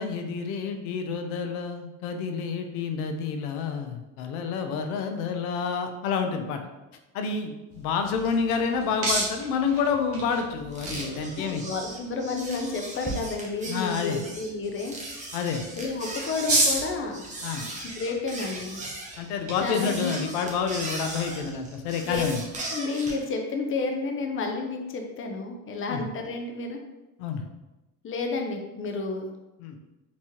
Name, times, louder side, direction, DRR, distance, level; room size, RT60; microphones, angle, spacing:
voice 1, 0.0-6.6 7.1-11.6 13.7-14.2 15.3-15.6 17.4-17.6 19.2-22.4 25.9-26.1 27.2-27.4 29.6-29.8, left 6 dB, 85° left, 6 dB, 0.6 m, -29 dB
sound 1, 7.7-22.2, right 2 dB, 30° right, 1.2 m, -35 dB
sound 2, 10.7-23.2, right 2 dB, 15° right, 0.8 m, -38 dB
voice 2, 11.3-15.0 15.8-17.2 17.6-17.7 17.9-18.8 19.6-20.1 22.0-22.2 22.7-26.8 28.0-29.3, left 4 dB, 30° left, 3 dB, 0.6 m, -31 dB
3.5 x 3.0 x 3.0 m, 1.0 s
supercardioid pair, 95°, 43 cm